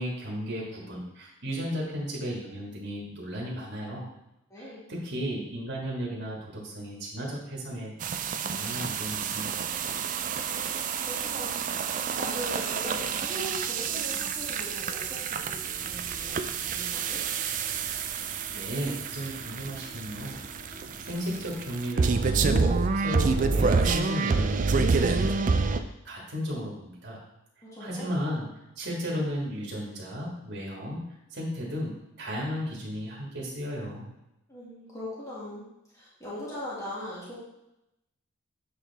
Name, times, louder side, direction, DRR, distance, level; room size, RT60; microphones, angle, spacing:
voice 1, 0.0-4.1 4.6-7.9 8.4-9.8 18.5-20.4 21.0-25.8 26.0-27.2 27.8-28.5 28.7-31.0 31.3-34.1, equal, 55° right, -4 dB, 1.6 m, -34 dB
voice 2, 4.5-4.8 10.5-10.6 11.1-11.7 12.1-17.2 27.6-28.1 34.5-35.7 35.9-37.4, equal, 15° left, -8 dB, 1.9 m, -40 dB
sound 1, 8.0-25.8, right 4 dB, 40° right, 0.3 m, -28 dB
sound 2, 15.4-25.3, equal, 50° left, 2.3 m, -50 dB
7.6 x 4.5 x 3.4 m, 0.87 s
head